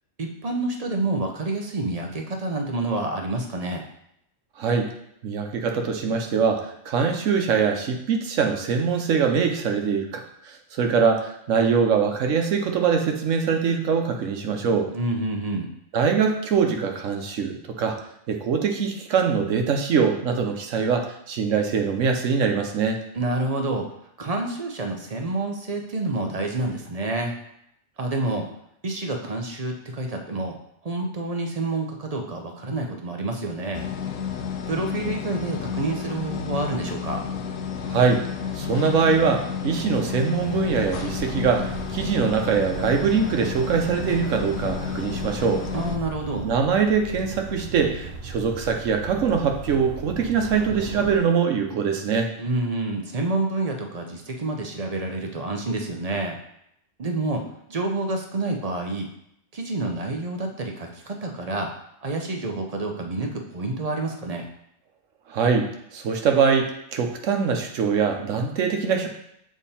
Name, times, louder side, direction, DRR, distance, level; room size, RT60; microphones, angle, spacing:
voice 1, 0.2-3.8 14.9-15.7 23.1-23.9 24.2-27.3 28.0-28.5 28.8-30.6 30.8-33.9 34.7-37.2 45.7-46.5 52.4-56.4 57.0-57.4 57.7-59.1 59.5-61.7 62.0-64.5, right 2 dB, 35° right, 2 dB, 0.7 m, -28 dB
voice 2, 4.6-4.9 5.2-14.9 15.9-18.0 18.3-23.0 37.9-38.2 38.5-45.6 46.4-52.3 65.3-69.1, right 6 dB, 85° right, 4 dB, 1.2 m, -23 dB
sound 1, 33.7-46.0, left 7 dB, 85° left, 1.0 m, -31 dB
sound 2, 40.4-51.2, right 3 dB, 60° right, 1.0 m, -37 dB
7.1 x 3.6 x 4.2 m, 0.75 s
omnidirectional pair, 1.3 m